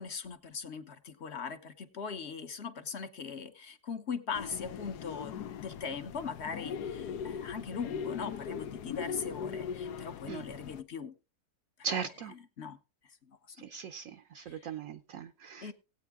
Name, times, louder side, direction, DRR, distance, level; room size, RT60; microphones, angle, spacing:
voice 1, 0.0-11.1 12.2-12.8 13.0-13.7 14.4-14.7 15.6-15.7, left 5 dB, 45° left, 9 dB, 1.2 m, -40 dB
sound 1, 4.3-10.8, left 7 dB, 80° left, 1.3 m, -40 dB
voice 2, 11.8-12.3 13.7-14.0 14.3-15.6, right 6 dB, 60° right, 9 dB, 1.0 m, -38 dB
17.0 x 9.0 x 3.6 m, 0.32 s
omnidirectional pair, 1.7 m